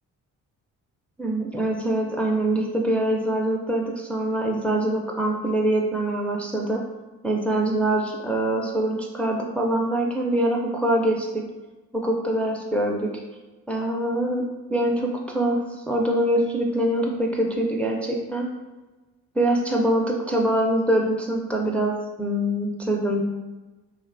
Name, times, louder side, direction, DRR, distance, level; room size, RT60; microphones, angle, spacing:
voice 1, 1.2-6.8 7.2-11.4 11.9-13.1 13.7-14.4 14.7-15.6 15.9-18.5 19.3-23.2, right 1 dB, 5° left, -1 dB, 0.4 m, -24 dB
2.8 x 2.3 x 2.4 m, 1.1 s
hypercardioid pair, 45°, 41 cm